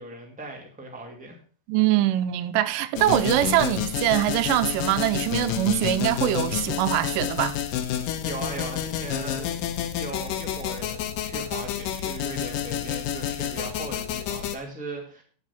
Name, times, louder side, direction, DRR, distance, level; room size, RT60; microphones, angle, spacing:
voice 1, 0.0-1.4 8.0-9.6 9.9-15.2, right 2 dB, 5° right, 1.6 m, -38 dB
voice 2, 1.7-7.6, right 14 dB, 90° right, 2.3 m, -23 dB
sound 1, 2.9-14.6, left 10 dB, 85° left, 2.5 m, -29 dB
9.6 x 7.2 x 5.7 m
omnidirectional pair, 3.8 m